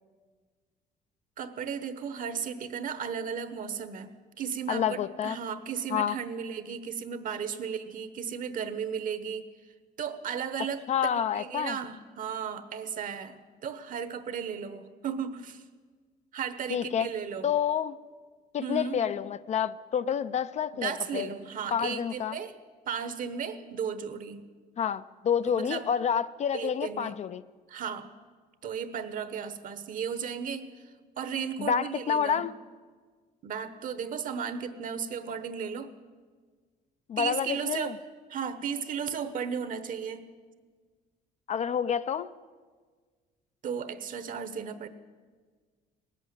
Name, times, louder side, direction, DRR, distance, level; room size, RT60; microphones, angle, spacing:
voice 1, 1.4-9.5 10.0-10.8 11.1-15.6 16.3-17.5 18.6-19.0 20.7-22.5 22.8-24.5 25.5-25.9 26.5-27.2 27.7-28.1 28.6-30.7 31.2-32.5 33.4-35.9 37.2-38.0 38.3-40.3 43.6-44.9, right 7 dB, 55° right, 1.1 m, -35 dB
voice 2, 4.7-5.4 5.9-6.2 10.9-11.8 16.7-17.1 17.4-18.0 18.5-21.3 21.7-22.4 24.8-27.4 31.6-32.5 37.1-38.0 41.5-42.3, left 8 dB, 40° left, 0.4 m, -28 dB
18.5 x 8.3 x 9.2 m
cardioid pair, 110°, 17 cm